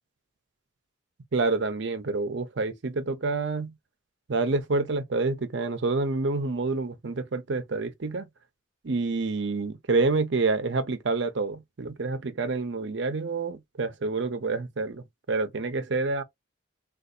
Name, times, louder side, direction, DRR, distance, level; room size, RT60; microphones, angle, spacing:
voice 1, 1.3-3.8 4.3-8.3 8.8-16.2, right 3 dB, 60° right, 0.6 m, -28 dB
3.9 x 2.4 x 2.4 m
head